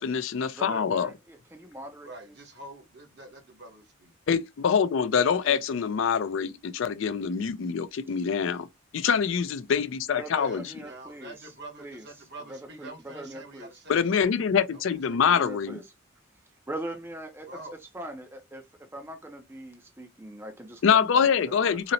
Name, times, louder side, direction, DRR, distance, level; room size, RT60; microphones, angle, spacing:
voice 1, 0.0-1.1 4.3-8.7 8.9-10.6 13.9-15.8 20.8-21.9, left 7 dB, 65° left, 0.4 m, -25 dB
voice 2, 0.5-2.5 5.4-5.8 10.2-11.5 11.8-13.8 15.1-15.9 16.7-18.7 18.9-21.9, right 1 dB, 10° right, 0.4 m, -42 dB
voice 3, 2.0-4.2 10.3-14.3 14.7-15.4 17.5-17.7, right 2 dB, 50° right, 0.9 m, -46 dB
3.9 x 2.0 x 2.6 m
head